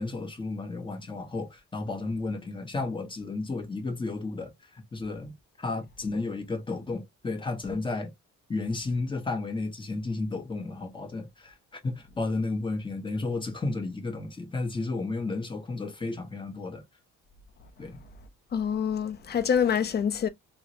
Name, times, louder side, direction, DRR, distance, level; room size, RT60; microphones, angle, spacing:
voice 1, 0.0-8.1 8.5-11.6 11.8-16.8 17.8-18.0, left 3 dB, 15° left, 0.9 m, -33 dB
voice 2, 18.5-20.3, left 7 dB, 35° left, 0.5 m, -26 dB
3.6 x 2.1 x 2.7 m
cardioid pair, 155°, 31 cm